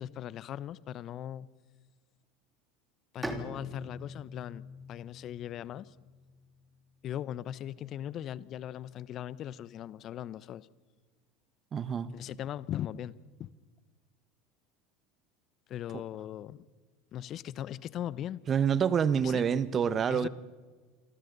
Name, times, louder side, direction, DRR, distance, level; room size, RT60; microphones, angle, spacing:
voice 1, 0.0-1.5 3.1-4.6 4.9-5.9 7.0-10.7 12.1-13.5 15.7-16.7 17.1-18.4 19.2-19.4 20.1-20.3, left 11 dB, 50° left, 0.8 m, -39 dB
Bowed string instrument, 3.2-6.8, equal, 10° right, 3.4 m, -43 dB
voice 2, 11.7-12.1 18.5-20.3, right 7 dB, 35° right, 1.3 m, -27 dB
28.5 x 25.0 x 4.1 m
hypercardioid pair, 85°, 0 cm